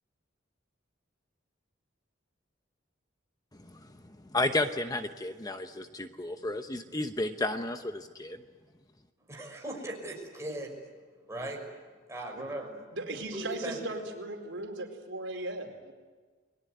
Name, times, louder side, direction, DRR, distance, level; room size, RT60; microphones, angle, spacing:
voice 1, 3.6-3.9 4.2-8.4, left 2 dB, 20° left, 7 dB, 0.9 m, -32 dB
voice 2, 9.3-10.7 11.3-11.6 12.1-12.7 13.3-13.8, right 1 dB, 15° right, 0 dB, 5.9 m, -38 dB
voice 3, 12.9-15.9, right 2 dB, 80° right, 3 dB, 4.4 m, -37 dB
29.5 x 21.0 x 9.4 m, 1.4 s
head